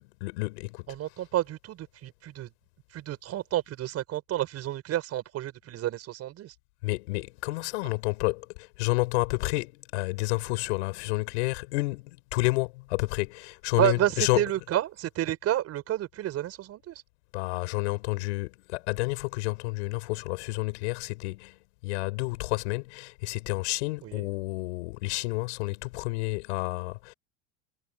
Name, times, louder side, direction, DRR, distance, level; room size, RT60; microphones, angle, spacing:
voice 1, 0.0-0.9 6.8-14.4 17.3-27.1, left 24 dB, 80° left, 6.9 m, -30 dB
voice 2, 0.9-2.5 2.9-6.5 13.8-17.0 24.0-24.3, right 13 dB, 45° right, 6.8 m, -30 dB
supercardioid pair, 120°, 34 cm